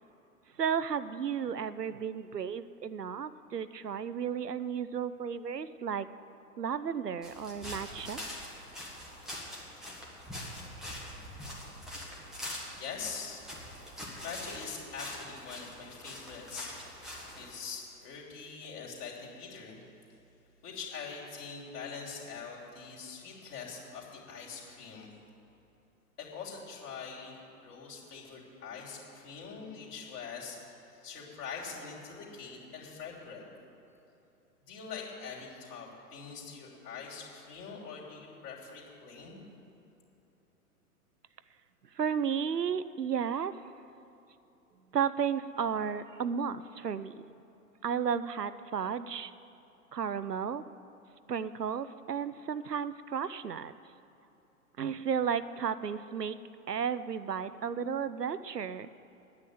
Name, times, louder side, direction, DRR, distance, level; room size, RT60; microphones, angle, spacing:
voice 1, 0.6-6.1 6.6-8.2 42.0-43.5 44.9-47.1 47.8-49.3 49.9-50.6 51.3-53.7 54.8-56.4 56.7-58.9, right 7 dB, 85° right, 14 dB, 0.6 m, -33 dB
sound 1, 7.2-17.6, equal, ahead, 1.7 m, -44 dB
voice 2, 12.7-13.7 14.2-17.0 17.3-19.8 20.6-25.2 26.2-33.5 34.6-39.4, left 5 dB, 25° left, -5 dB, 3.1 m, -43 dB
9.7 x 9.5 x 9.4 m, 2.9 s
figure-of-eight pair, 110°, 47 cm